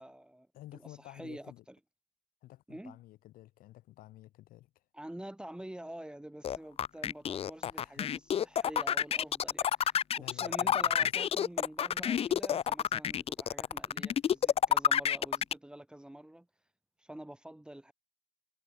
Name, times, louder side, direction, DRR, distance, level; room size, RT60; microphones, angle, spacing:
voice 1, 0.0-0.5 0.7-1.8 2.7-3.0 4.9-16.5 17.0-17.9, right 1 dB, 5° right, 1.9 m, -47 dB
voice 2, 0.5-1.6 2.4-4.7 7.6-8.1 10.2-11.1, left 15 dB, 75° left, 3.7 m, -51 dB
sound 1, 6.4-15.5, left 9 dB, 40° left, 0.6 m, -29 dB
supercardioid pair, 85°, 15 cm